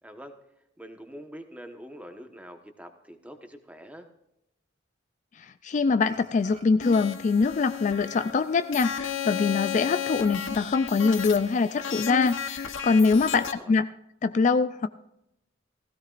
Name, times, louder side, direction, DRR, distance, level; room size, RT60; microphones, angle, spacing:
voice 1, 0.0-0.4 0.8-4.1 13.3-13.7, equal, 5° right, 6 dB, 1.2 m, -45 dB
voice 2, 5.4-13.9 14.2-14.9, left 4 dB, 40° left, 11 dB, 0.3 m, -24 dB
Burping eructation, 6.1-7.4 7.6-9.5 9.9-10.0 10.5-10.7 11.3-11.8, right 1 dB, 40° right, 2.2 m, -53 dB
sound 1, 6.8-13.5, left 8 dB, 70° left, 1.0 m, -34 dB
16.5 x 16.0 x 2.5 m, 0.81 s
head